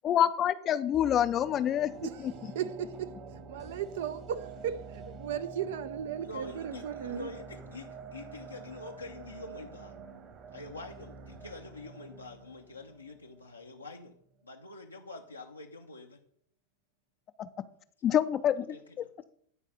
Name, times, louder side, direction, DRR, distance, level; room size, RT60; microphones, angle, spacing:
voice 1, 0.0-1.9 17.4-17.5 18.0-19.1, left 10 dB, 30° left, 0.5 m, -27 dB
sound 1, 0.9-14.0 14.3-14.4, right 5 dB, 35° right, 1.4 m, -47 dB
voice 2, 2.0-7.3, right 9 dB, 55° right, 0.5 m, -36 dB
voice 3, 6.2-9.9 10.5-14.1 14.4-16.2 18.6-19.1, left 3 dB, 85° left, 0.8 m, -46 dB
9.9 x 4.8 x 6.6 m
figure-of-eight pair, 90°, 0 cm